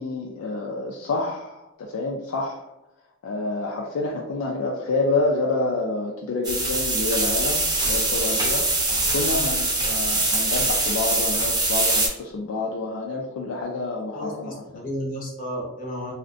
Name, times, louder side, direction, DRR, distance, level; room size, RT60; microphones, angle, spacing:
voice 1, 0.0-2.7 3.2-14.8, left 3 dB, 85° left, -1 dB, 0.3 m, -28 dB
sound 1, 6.4-12.1, right 2 dB, 20° right, 0.5 m, -23 dB
voice 2, 14.1-16.1, equal, 40° left, -4 dB, 0.8 m, -32 dB
2.5 x 2.1 x 2.4 m, 0.91 s
head